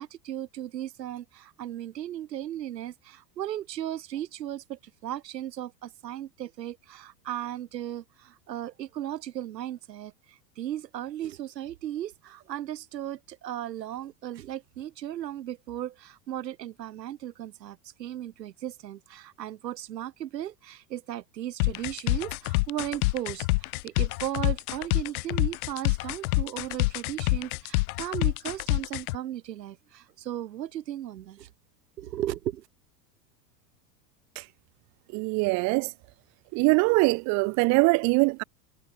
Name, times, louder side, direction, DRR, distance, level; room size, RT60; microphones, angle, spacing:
voice 1, 0.0-31.5 32.0-32.6, right 12 dB, 85° right, 2.0 m, -36 dB
sound 1, 21.6-29.2, left 23 dB, 65° left, 0.7 m, -26 dB
voice 2, 35.1-35.9 36.5-38.4, right 29 dB, 40° right, 0.4 m, -22 dB
hypercardioid pair, 100°, 48 cm